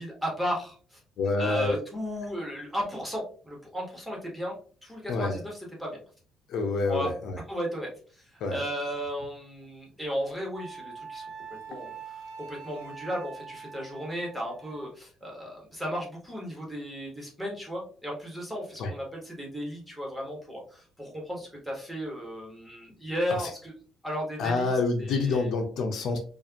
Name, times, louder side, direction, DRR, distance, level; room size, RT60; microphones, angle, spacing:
voice 1, 0.0-1.0 1.4-6.0 6.9-7.1 7.5-11.3 11.7-23.7 24.0-25.5, equal, 5° right, -2 dB, 1.7 m, -35 dB
voice 2, 1.2-1.8 5.1-5.4 6.5-7.4 8.4-8.6 18.8-18.9 23.3-23.5 24.4-26.2, left 3 dB, 70° left, 4 dB, 0.9 m, -27 dB
Wind instrument woodwind instrument, 10.5-14.9, right 6 dB, 90° right, 0.9 m, -43 dB
4.7 x 2.6 x 2.9 m, 0.41 s
cardioid pair, 115°, 0 cm